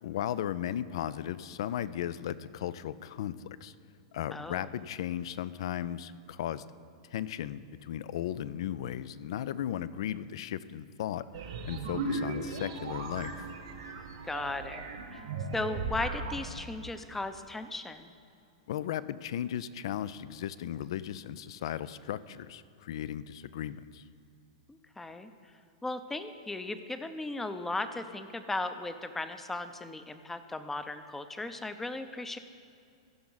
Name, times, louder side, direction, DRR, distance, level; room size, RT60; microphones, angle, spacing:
voice 1, 0.0-3.7 4.1-6.6 7.1-11.3 11.6-13.3 18.7-24.0, left 11 dB, 60° left, 16 dB, 0.3 m, -36 dB
voice 2, 4.3-4.7 14.3-15.2 15.5-18.1 24.7-25.3 25.8-32.4, left 2 dB, 10° left, 10 dB, 0.6 m, -36 dB
sound 1, 11.3-16.5, right 3 dB, 65° right, 1.2 m, -37 dB
15.0 x 5.9 x 4.0 m, 2.5 s
hypercardioid pair, 105°, 3 cm